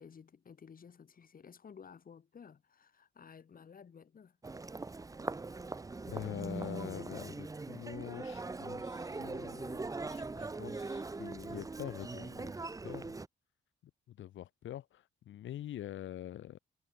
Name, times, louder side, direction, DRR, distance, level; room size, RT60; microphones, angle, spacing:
voice 1, 0.0-4.4, left 6 dB, 45° left, 6.0 m, -54 dB
Human voice, 4.4-13.3, right 3 dB, 15° right, 0.9 m, -41 dB
voice 2, 6.0-9.8 10.1-13.2 14.1-16.6, left 12 dB, 75° left, 3.2 m, -45 dB
cardioid pair, 90°, 20 cm